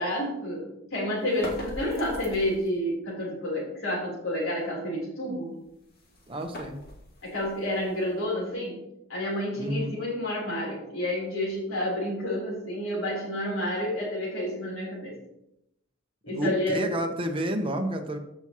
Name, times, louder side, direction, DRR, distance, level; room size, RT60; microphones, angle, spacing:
voice 1, 0.0-5.5 7.2-8.8 9.1-15.2 16.2-16.8, left 1 dB, 70° left, -4 dB, 3.8 m, -30 dB
sound 1, 1.2-2.8 5.5-8.5, equal, 50° left, 2.4 m, -43 dB
voice 2, 6.3-6.8 9.6-9.9 16.4-18.2, equal, 25° right, 4 dB, 1.0 m, -30 dB
14.5 x 6.1 x 3.0 m, 0.84 s
head